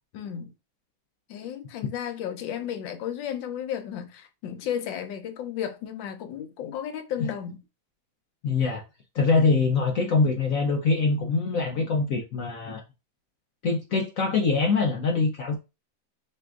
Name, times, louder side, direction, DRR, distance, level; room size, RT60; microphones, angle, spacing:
voice 1, 0.1-0.5 1.3-7.6 8.5-8.6, left 9 dB, 80° left, 1.4 m, -33 dB
voice 2, 8.4-8.8 9.1-12.8 13.6-15.6, left 4 dB, 65° left, 0.8 m, -24 dB
6.3 x 2.5 x 2.4 m
omnidirectional pair, 2.0 m